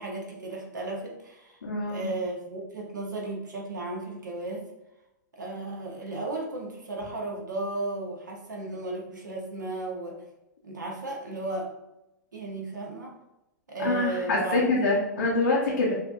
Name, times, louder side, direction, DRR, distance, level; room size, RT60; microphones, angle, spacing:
voice 1, 0.0-1.6 1.9-4.6 5.3-10.2 10.6-11.7 12.3-13.1 13.7-14.9, right 2 dB, 70° right, 0 dB, 1.0 m, -34 dB
voice 2, 1.6-2.1 13.8-15.9, left 2 dB, 70° left, -4 dB, 0.8 m, -25 dB
5.4 x 2.8 x 2.5 m, 0.93 s
figure-of-eight pair, 100°, 10 cm